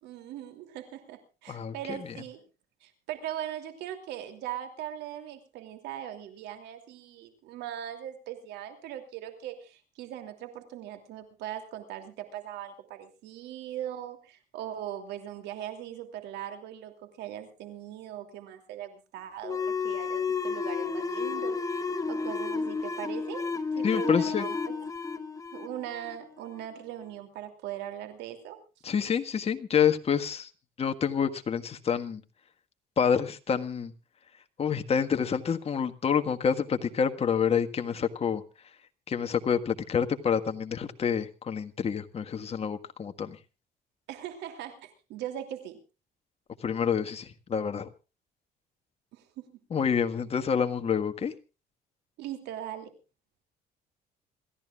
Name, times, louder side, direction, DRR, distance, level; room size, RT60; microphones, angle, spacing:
voice 1, 0.0-2.4 2.8-21.6 22.1-23.5 23.7-24.6 25.5-28.6 44.1-45.8 49.1-49.6 52.2-52.9, right 11 dB, 85° right, 2.9 m, -40 dB
voice 2, 1.5-2.2 23.8-24.5 28.8-30.5 30.8-32.2 33.0-33.9 34.6-38.4 39.1-43.4 46.6-47.9 49.7-51.3, left 7 dB, 35° left, 1.6 m, -28 dB
sound 1, 19.4-26.7, left 5 dB, 20° left, 1.2 m, -32 dB
27.0 x 14.5 x 2.4 m
cardioid pair, 110°, 17 cm